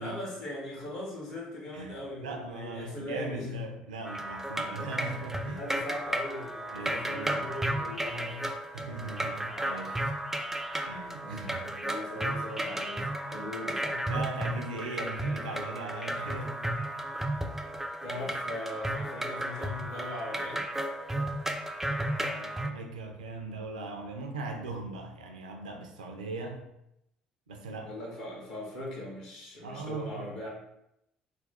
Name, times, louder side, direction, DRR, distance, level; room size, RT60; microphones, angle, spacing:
voice 1, 0.0-3.6 5.5-8.5 11.2-14.0 16.5-16.7 18.0-20.6 27.8-30.5, left 1 dB, 65° left, -3 dB, 1.3 m, -40 dB
voice 2, 2.2-5.7 6.7-7.4 8.7-10.0 10.8-11.7 13.3-13.5 14.1-16.6 18.1-18.2 22.3-26.7 27.5-27.9 29.6-30.4, right 3 dB, 75° right, 4 dB, 0.4 m, -39 dB
sound 1, 4.1-22.7, right 1 dB, 10° right, 0.3 m, -34 dB
3.2 x 2.2 x 4.1 m, 0.83 s
figure-of-eight pair, 55°, 4 cm